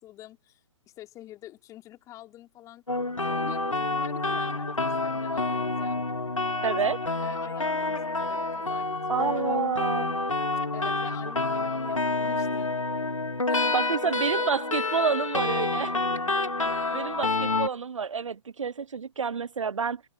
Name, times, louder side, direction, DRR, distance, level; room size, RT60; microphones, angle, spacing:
voice 1, 0.0-2.8 3.2-6.0 6.9-9.4 10.7-12.8 13.5-15.8 16.6-17.2, left 14 dB, 20° left, 5.4 m, -47 dB
sound 1, 2.9-17.7, left 2 dB, 90° left, 2.3 m, -28 dB
voice 2, 6.6-7.0 9.1-10.1 13.7-15.9 16.9-20.0, right 6 dB, 75° right, 0.8 m, -29 dB
figure-of-eight pair, 130°, 16 cm